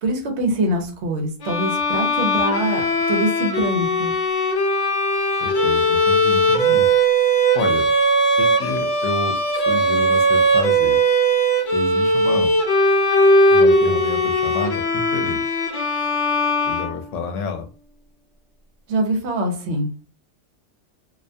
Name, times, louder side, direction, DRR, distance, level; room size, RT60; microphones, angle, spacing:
voice 1, 0.0-4.1 18.9-19.9, right 1 dB, 70° right, 4 dB, 0.9 m, -24 dB
Bowed string instrument, 1.4-17.4, right 1 dB, 55° left, 0.6 m, -19 dB
voice 2, 5.4-6.9 7.5-7.9 8.3-11.0 11.7-12.5 13.5-15.5 16.7-17.7, left 4 dB, 80° left, 6 dB, 0.9 m, -29 dB
2.4 x 2.1 x 2.6 m, 0.35 s
omnidirectional pair, 1.2 m